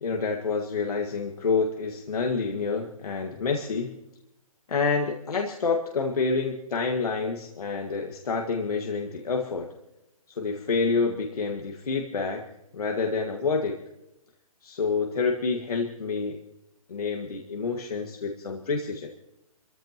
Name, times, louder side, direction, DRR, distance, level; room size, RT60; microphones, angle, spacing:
voice 1, 0.0-3.9 4.7-9.7 10.3-12.5 12.7-13.8 14.6-16.4 16.9-19.1, left 4 dB, 75° left, 1 dB, 1.9 m, -28 dB
28.5 x 14.5 x 3.0 m, 0.89 s
hypercardioid pair, 170°, 19 cm